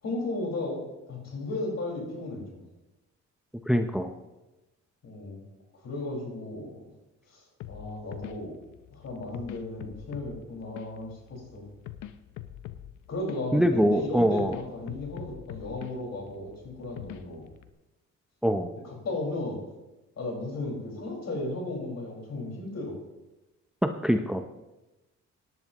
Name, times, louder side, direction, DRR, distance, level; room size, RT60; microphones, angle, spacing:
voice 1, 0.0-0.8 1.1-2.6 5.0-5.4 5.7-6.9 7.3-8.6 8.9-11.6 13.1-17.5 18.8-19.6 20.1-23.0, left 2 dB, 60° left, -1 dB, 5.0 m, -35 dB
voice 2, 3.7-4.1 13.5-14.6 18.4-18.7 23.8-24.4, equal, ahead, 7 dB, 0.6 m, -24 dB
sound 1, 7.6-17.7, left 12 dB, 85° left, 0.7 m, -45 dB
17.5 x 10.5 x 3.0 m, 1.0 s
cardioid pair, 90°, 30 cm